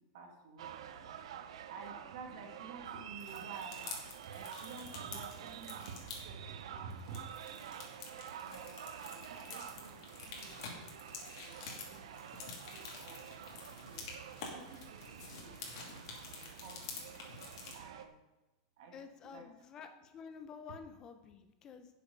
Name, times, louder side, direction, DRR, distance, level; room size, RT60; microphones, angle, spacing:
voice 1, 0.1-1.2 1.5-3.9 4.3-7.8 8.4-10.7 11.3-14.1 14.4-15.5 16.2-18.2 18.8-19.4, right 4 dB, 55° right, 2 dB, 2.0 m, -52 dB
sound 1, 0.6-18.1, right 9 dB, 90° right, 0.7 m, -49 dB
sound 2, 3.2-6.2 6.9-17.8, left 5 dB, 60° left, 2.7 m, -49 dB
voice 2, 18.9-21.9, left 6 dB, 20° left, 8 dB, 0.8 m, -50 dB
11.0 x 7.1 x 5.4 m, 0.99 s
supercardioid pair, 170°, 3 cm